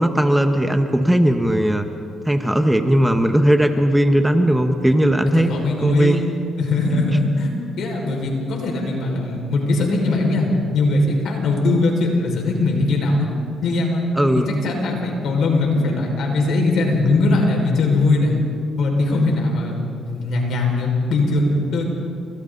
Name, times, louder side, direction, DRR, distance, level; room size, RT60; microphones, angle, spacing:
voice 1, 0.0-1.9 2.2-5.5 5.8-6.2 14.2-14.5, right 1 dB, 5° right, 6 dB, 1.5 m, -17 dB
voice 2, 5.3-6.2 6.6-13.3 13.6-14.0 14.4-18.3 18.8-19.8 20.0-21.8, left 2 dB, 70° left, 0 dB, 5.9 m, -20 dB
29.5 x 26.5 x 4.2 m, 2.5 s
cardioid pair, 90°, 0 cm